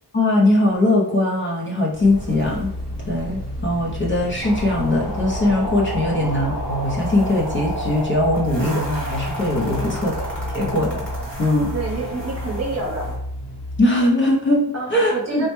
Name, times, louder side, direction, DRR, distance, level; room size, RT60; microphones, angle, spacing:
voice 1, 0.1-2.7 3.1-10.3 10.5-11.0 11.4-11.7 13.8-15.5, left 1 dB, 30° left, -4 dB, 0.5 m, -20 dB
Walk footsteps, 1.9-13.2, equal, 20° right, 1.1 m, -36 dB
sound 1, 2.4-13.8, left 1 dB, 65° left, 0.9 m, -33 dB
sound 2, 4.4-13.2, right 1 dB, 5° left, 0.9 m, -32 dB
voice 2, 11.7-13.1 14.7-15.5, right 3 dB, 40° right, -1 dB, 0.7 m, -28 dB
3.2 x 2.1 x 2.9 m, 0.77 s
wide cardioid pair, 155°, 41 cm